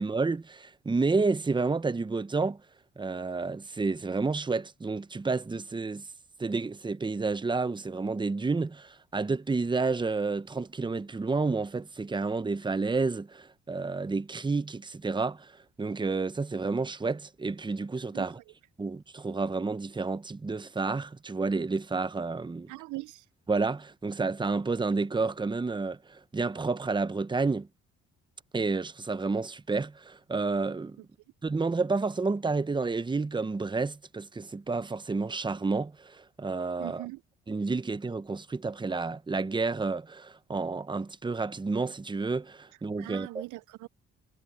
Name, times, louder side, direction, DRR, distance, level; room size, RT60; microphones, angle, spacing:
voice 1, 0.0-2.6 3.0-6.0 6.4-15.5 15.8-18.4 18.8-22.7 23.5-27.7 28.5-31.0 31.4-37.1 37.5-43.4, right 3 dB, 15° right, 0.8 m, -30 dB
voice 2, 22.7-23.3 36.8-37.2 43.0-43.9, right 20 dB, 80° right, 0.5 m, -40 dB
cardioid pair, 90°, 30 cm